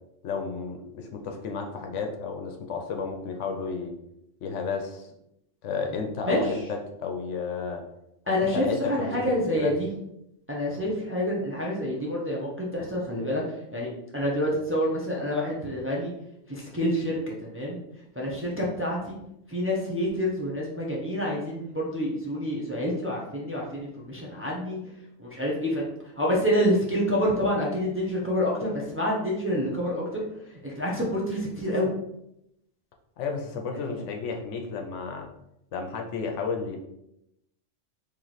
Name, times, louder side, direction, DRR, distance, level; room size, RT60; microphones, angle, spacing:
voice 1, 0.2-3.9 4.4-5.1 5.6-7.8 8.3-9.1 9.5-9.7 33.2-35.3 35.7-36.8, left 5 dB, 85° left, 3 dB, 1.0 m, -32 dB
voice 2, 6.2-6.6 8.3-9.9 10.5-13.9 14.1-16.1 16.5-17.8 18.1-19.2 19.5-24.8 25.2-25.9 26.2-30.0 30.4-31.9 33.7-34.0, equal, 15° right, -4 dB, 0.5 m, -27 dB
3.1 x 3.0 x 4.0 m, 0.82 s
omnidirectional pair, 1.2 m